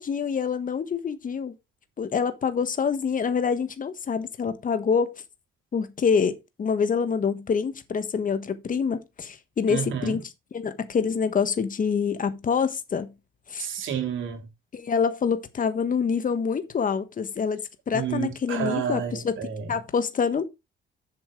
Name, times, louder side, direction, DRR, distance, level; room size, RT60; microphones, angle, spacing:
voice 1, 0.0-1.5 2.0-5.1 5.7-13.1 13.5-13.7 14.7-19.4 19.7-20.4, left 6 dB, 45° left, 1.4 m, -26 dB
voice 2, 9.7-10.2 13.6-14.5 17.9-19.7, right 8 dB, 75° right, 3.1 m, -30 dB
7.3 x 7.1 x 4.8 m
cardioid pair, 90°, 20 cm